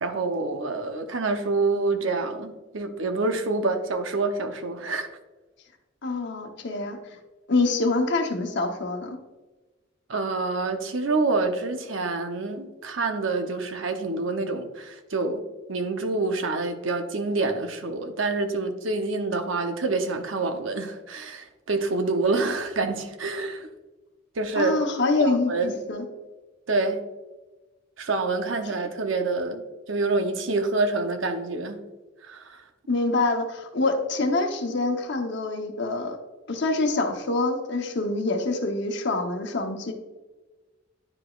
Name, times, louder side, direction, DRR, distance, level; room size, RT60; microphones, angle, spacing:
voice 1, 0.0-5.1 10.1-15.4 15.7-23.7 24.4-24.7 25.2-25.7 26.7-27.0 28.0-31.8 32.2-32.6, right 3 dB, 90° right, 7 dB, 0.8 m, -27 dB
voice 2, 6.0-7.0 7.5-9.2 24.5-26.0 32.9-36.2 36.5-39.9, left 3 dB, 65° left, 4 dB, 0.9 m, -25 dB
9.7 x 4.9 x 2.4 m, 1.2 s
head